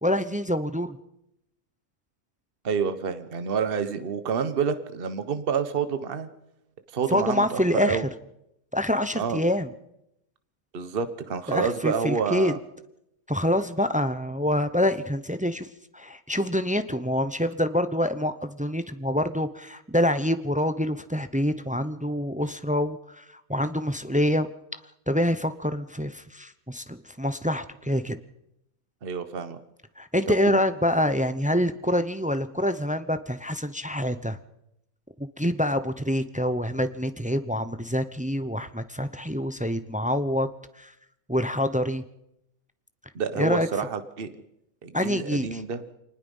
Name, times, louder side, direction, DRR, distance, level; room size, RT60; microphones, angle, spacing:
voice 1, 0.0-1.0 7.1-8.0 8.7-9.7 11.5-12.5 13.3-15.7 15.9-23.2 23.5-24.5 25.1-28.2 30.0-34.4 35.2-40.5 40.8-40.9 41.3-42.0 43.4-43.7 44.9-45.6, left 1 dB, 10° right, 11 dB, 0.5 m, -26 dB
voice 2, 2.6-6.3 6.9-8.1 9.1-9.4 10.7-12.6 29.0-29.6 30.3-30.6 43.1-44.3 44.8-45.8, right 6 dB, 45° right, 10 dB, 1.3 m, -28 dB
24.5 x 20.0 x 5.5 m, 0.83 s
omnidirectional pair, 1.5 m